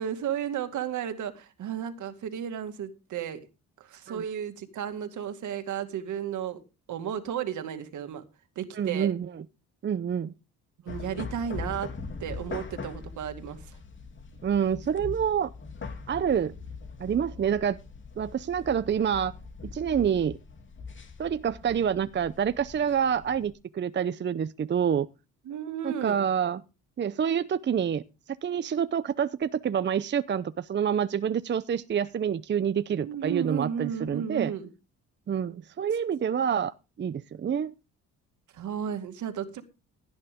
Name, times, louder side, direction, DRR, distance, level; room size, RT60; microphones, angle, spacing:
voice 1, 0.0-3.4 3.8-6.6 6.9-8.2 8.6-9.1 10.8-11.9 12.2-13.8 25.5-26.2 33.0-34.7 38.5-39.6, right 9 dB, 70° right, 2.2 m, -33 dB
voice 2, 8.8-9.4 9.8-10.3 14.4-15.5 16.1-16.5 17.0-17.8 18.2-19.3 19.6-20.4 21.2-25.1 25.8-26.6 27.0-28.0 28.4-34.5 35.3-37.7, right 8 dB, 35° right, 0.7 m, -27 dB
sound 1, 10.9-23.5, left 4 dB, 40° left, 2.8 m, -42 dB
16.5 x 9.4 x 3.6 m
cardioid pair, 90°, 31 cm